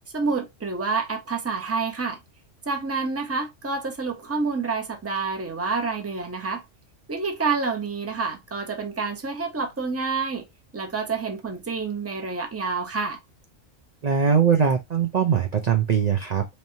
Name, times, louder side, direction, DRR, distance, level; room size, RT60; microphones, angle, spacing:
voice 1, 0.1-2.2 2.7-6.6 7.1-10.5 10.7-13.2, right 4 dB, 15° right, 0.7 m, -28 dB
voice 2, 14.0-16.5, right 7 dB, 45° right, 0.6 m, -21 dB
4.3 x 3.2 x 2.7 m
omnidirectional pair, 1.3 m